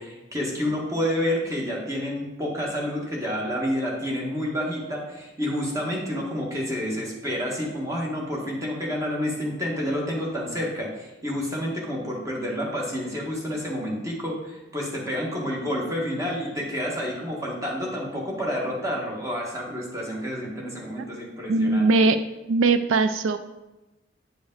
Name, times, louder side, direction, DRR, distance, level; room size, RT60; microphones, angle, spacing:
voice 1, 0.0-21.9, equal, 15° right, -2 dB, 1.5 m, -29 dB
voice 2, 21.5-22.2 22.5-23.4, right 3 dB, 85° right, 11 dB, 0.4 m, -20 dB
9.0 x 5.1 x 3.9 m, 1.0 s
head